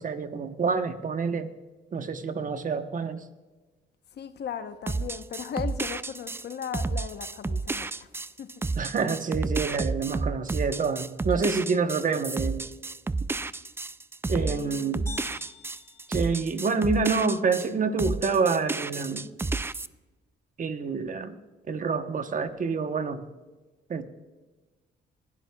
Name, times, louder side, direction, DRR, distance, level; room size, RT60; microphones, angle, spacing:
voice 1, 0.0-1.5 1.9-3.2 8.8-12.6 14.3-15.0 16.1-19.3 20.6-21.4 21.7-23.3 23.9-24.0, right 4 dB, 40° right, 1.0 m, -27 dB
voice 2, 4.1-8.5 14.4-15.2, left 8 dB, 60° left, 0.9 m, -37 dB
sound 1, 4.9-17.7 18.0-19.9, right 3 dB, 10° right, 0.3 m, -31 dB
sound 2, 15.1-17.0, left 4 dB, 15° left, 3.1 m, -46 dB
20.5 x 12.5 x 2.3 m
cardioid pair, 90°, 20 cm